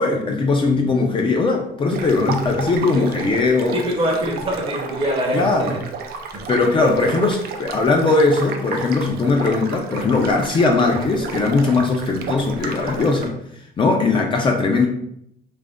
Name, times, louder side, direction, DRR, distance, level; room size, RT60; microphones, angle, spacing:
voice 1, 0.0-3.8 5.0-5.8 6.5-13.3 13.8-14.9, left 3 dB, 30° left, 1 dB, 0.4 m, -19 dB
sound 1, 1.9-13.3, right 5 dB, 65° right, 0.4 m, -33 dB
voice 2, 3.7-5.8 6.3-6.5, equal, 35° right, 1 dB, 0.7 m, -24 dB
2.5 x 2.0 x 3.4 m, 0.71 s
cardioid pair, 110°, 17 cm